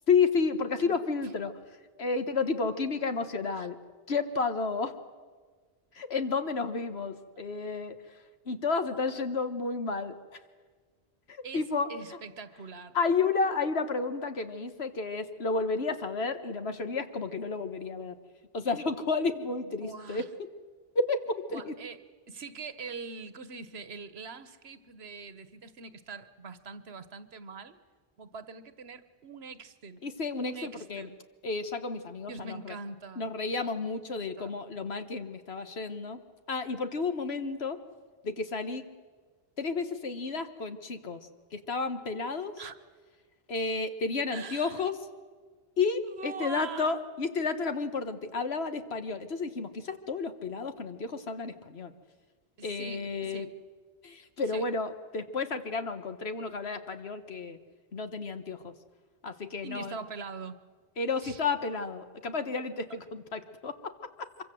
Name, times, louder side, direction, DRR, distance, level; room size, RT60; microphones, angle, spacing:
voice 1, 0.1-1.5 2.0-3.8 4.1-4.9 5.9-7.9 8.4-10.1 11.3-11.9 12.9-18.1 18.5-20.2 20.9-21.7 30.0-31.1 31.4-32.7 33.2-36.2 36.5-37.8 38.2-38.8 39.6-41.2 41.5-42.5 43.5-44.9 45.8-51.9 52.6-53.5 54.0-57.6 57.9-58.7 59.2-59.9 61.0-63.7, left 4 dB, 85° left, 9 dB, 1.7 m, -31 dB
voice 2, 11.4-13.0 19.8-20.3 21.5-22.0 22.3-27.8 28.2-30.0 30.4-31.2 32.3-33.3 34.2-34.5 42.6-42.7 44.3-44.8 46.0-47.0 52.6-53.5 54.5-54.6 59.6-60.6 61.2-61.4, right 4 dB, 80° right, 12 dB, 1.4 m, -43 dB
25.0 x 23.5 x 7.7 m, 1.5 s
omnidirectional pair, 1.0 m